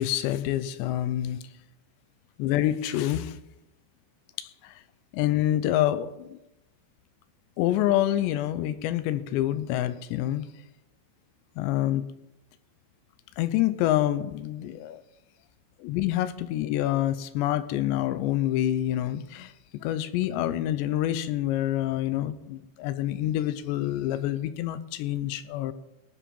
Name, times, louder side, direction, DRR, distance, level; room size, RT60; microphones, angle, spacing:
voice 1, 0.0-1.4 2.4-3.4 4.4-4.8 5.1-6.4 7.6-10.4 11.6-12.0 13.4-15.0 15.8-25.7, left 13 dB, 80° left, 13 dB, 2.7 m, -27 dB
18.5 x 7.4 x 5.3 m, 0.90 s
omnidirectional pair, 5.3 m